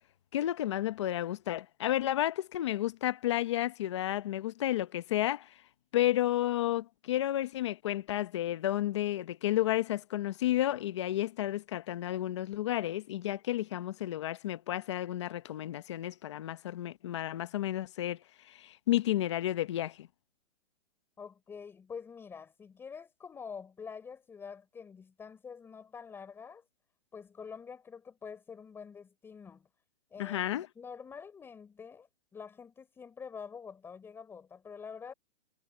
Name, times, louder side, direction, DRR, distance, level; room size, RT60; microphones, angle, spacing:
voice 1, 0.3-5.5 5.9-18.2 18.5-20.1 30.2-30.7, left 13 dB, 25° left, 0.9 m, -31 dB
voice 2, 21.2-26.6 27.1-29.7 30.1-35.1, left 6 dB, 5° left, 6.6 m, -46 dB
hypercardioid pair, 170°, 32 cm